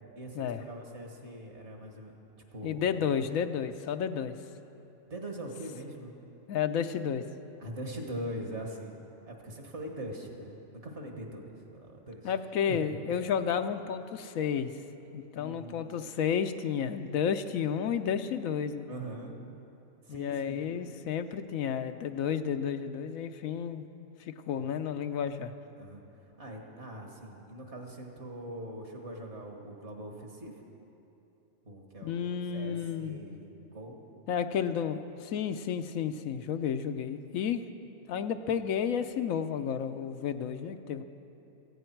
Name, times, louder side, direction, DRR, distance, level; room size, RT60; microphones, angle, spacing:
voice 1, 0.2-2.1 2.5-2.8 5.1-6.2 7.6-8.9 9.3-12.3 12.7-12.9 15.4-15.9 18.9-19.4 20.1-20.7 24.6-24.7 25.8-26.0 26.4-30.6 31.7-32.3 32.5-34.0, right 1 dB, 55° right, 1 dB, 2.0 m, -42 dB
voice 2, 2.6-4.4 6.5-7.2 12.2-14.7 15.1-18.9 20.1-23.9 24.2-25.5 32.0-33.2 34.3-37.6 38.1-41.0, left 8 dB, 80° left, 9 dB, 1.1 m, -31 dB
17.5 x 15.0 x 4.6 m, 3.0 s
omnidirectional pair, 1.4 m